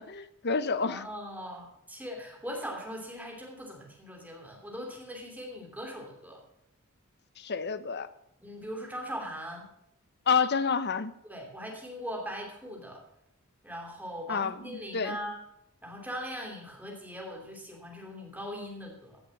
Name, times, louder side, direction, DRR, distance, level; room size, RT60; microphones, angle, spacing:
voice 1, 0.0-1.1 7.4-8.1 10.3-11.1 14.3-15.2, left 5 dB, 50° left, 14 dB, 0.8 m, -29 dB
voice 2, 0.8-6.4 8.4-9.7 11.2-13.0 13.6-15.4 15.8-19.2, equal, 10° right, 0 dB, 3.0 m, -40 dB
16.0 x 5.9 x 7.1 m, 0.78 s
head